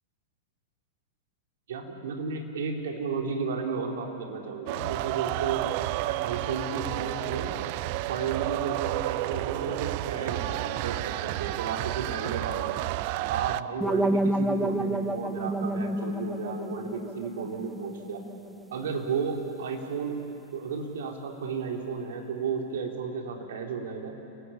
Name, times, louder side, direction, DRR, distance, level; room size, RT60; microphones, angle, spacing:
voice 1, 1.7-5.7 6.0-7.5 8.1-12.8 13.3-18.2 18.7-20.3 20.5-24.1, right 5 dB, 65° right, 1 dB, 3.7 m, -33 dB
sound 1, 4.7-13.6, right 17 dB, 50° right, 0.5 m, -31 dB
sound 2, 13.8-18.7, right 1 dB, 5° right, 0.9 m, -30 dB
29.5 x 19.0 x 8.7 m, 2.9 s
figure-of-eight pair, 95°, 0 cm